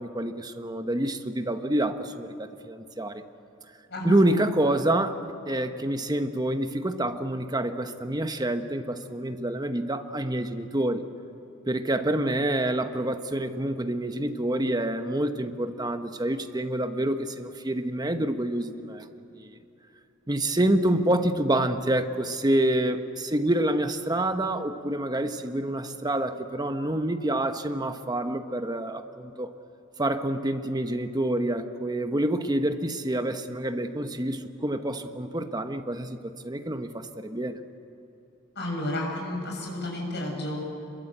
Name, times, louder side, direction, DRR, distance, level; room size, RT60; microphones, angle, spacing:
voice 1, 0.0-3.2 4.0-11.0 11.7-19.1 19.3-19.6 20.3-29.5 30.0-37.6, right 1 dB, 20° right, 7 dB, 1.1 m, -27 dB
voice 2, 38.6-40.6, left 1 dB, 55° left, -1 dB, 7.3 m, -31 dB
26.5 x 22.5 x 8.1 m, 2.8 s
head